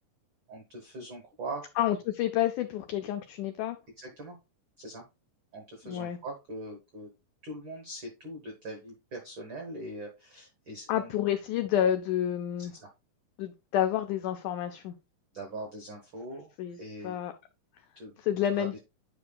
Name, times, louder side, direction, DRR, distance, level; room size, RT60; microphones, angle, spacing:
voice 1, 0.5-1.9 4.0-4.4 4.8-5.0 5.5-7.1 7.4-11.1 12.6-12.9 15.3-17.2 17.9-18.1 18.6-18.8, right 1 dB, 85° right, 3 dB, 1.0 m, -42 dB
voice 2, 1.8-3.8 5.8-6.2 10.9-12.7 13.4-14.9 16.6-16.8 17.0-17.3 18.2-18.8, left 11 dB, 90° left, 7 dB, 1.7 m, -29 dB
9.3 x 5.3 x 2.3 m, 0.26 s
omnidirectional pair, 4.2 m